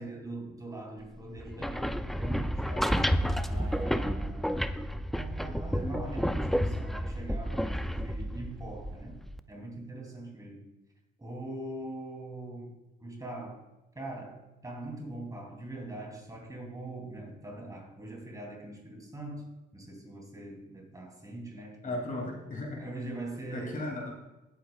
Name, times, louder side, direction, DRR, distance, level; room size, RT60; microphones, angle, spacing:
voice 1, 0.0-3.0 3.5-4.6 5.1-9.2 9.5-10.7 11.2-13.7 13.9-22.0 22.8-24.0, right 1 dB, 20° right, 0 dB, 2.9 m, -42 dB
sound 1, 1.4-9.4, equal, ahead, 0.4 m, -31 dB
voice 2, 21.8-22.8 23.5-24.1, left 2 dB, 45° left, 0 dB, 2.6 m, -35 dB
18.0 x 8.4 x 2.3 m, 1.0 s
cardioid pair, 90°, 20 cm